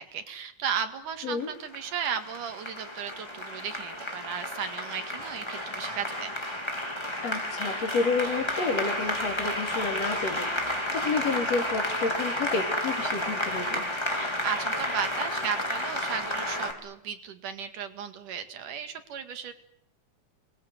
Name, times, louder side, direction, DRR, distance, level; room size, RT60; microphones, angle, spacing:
voice 1, 0.0-6.3 14.1-19.5, right 7 dB, 85° right, 8 dB, 3.6 m, -35 dB
Applause, 1.4-16.7, left 1 dB, 10° left, 3.5 m, -31 dB
voice 2, 7.2-13.8, left 4 dB, 55° left, 4 dB, 4.4 m, -30 dB
26.5 x 20.0 x 9.7 m, 0.75 s
omnidirectional pair, 3.6 m